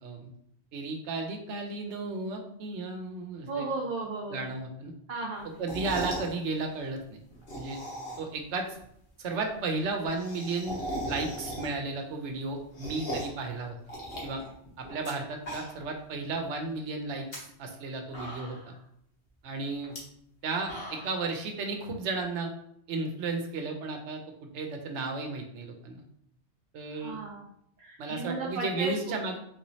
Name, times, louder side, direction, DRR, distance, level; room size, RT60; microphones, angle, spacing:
voice 1, 0.0-0.3 0.7-3.7 4.3-4.9 5.6-7.2 7.6-7.8 8.2-8.7 9.2-10.8 11.1-13.8 14.2-14.4 14.8-18.7 19.4-20.0 20.4-22.5 22.9-24.2 24.5-26.0 26.7-27.2 28.0-29.4, right 3 dB, 90° right, 3 dB, 1.0 m, -34 dB
voice 2, 3.5-4.4 5.1-5.5 26.9-27.4 27.8-28.9, right 3 dB, 55° right, -2 dB, 0.6 m, -34 dB
sound 1, 5.5-6.3 7.3-8.4 8.8-8.9 9.1-9.2 9.4-9.5 9.7-11.9 12.3-13.4 13.9-15.1 15.4-16.0 16.3-16.4 17.1-17.4 17.8-17.9 18.1-18.8 19.8-20.0 20.4-21.2, equal, 60° left, 1.3 m, -38 dB
3.7 x 3.0 x 2.7 m, 0.72 s
omnidirectional pair, 1.2 m